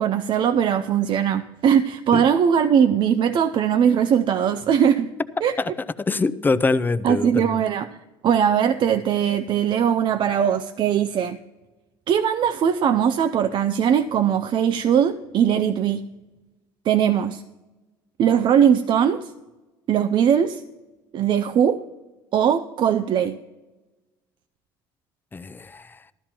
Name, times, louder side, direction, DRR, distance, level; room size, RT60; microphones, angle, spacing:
voice 1, 0.0-5.1 5.4-5.5 7.0-11.4 12.1-16.1 16.9-17.4 18.2-19.3 19.9-20.6 21.1-21.8 22.3-23.4, right 8 dB, 45° right, 9 dB, 0.5 m, -20 dB
voice 2, 6.0-7.6 25.3-26.0, left 3 dB, 15° left, 12 dB, 0.5 m, -24 dB
14.5 x 12.5 x 2.9 m, 1.1 s
supercardioid pair, 85°, 11 cm